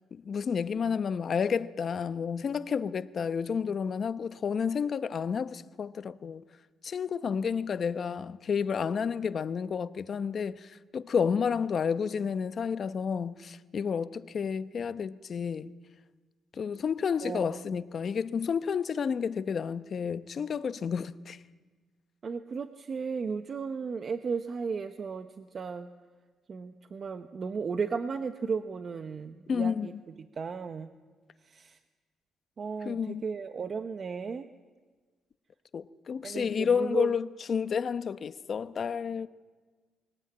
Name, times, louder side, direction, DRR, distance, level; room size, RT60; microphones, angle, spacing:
voice 1, 0.2-6.4 6.8-15.7 16.5-21.4 29.5-29.9 32.8-33.3 35.7-39.3, left 6 dB, 50° left, 0.9 m, -30 dB
voice 2, 17.2-17.6 22.2-25.9 26.5-29.9 30.2-30.9 31.4-31.8 32.6-34.5 36.2-37.1, right 5 dB, 45° right, 0.9 m, -35 dB
23.5 x 18.5 x 8.8 m
cardioid pair, 90°, 0 cm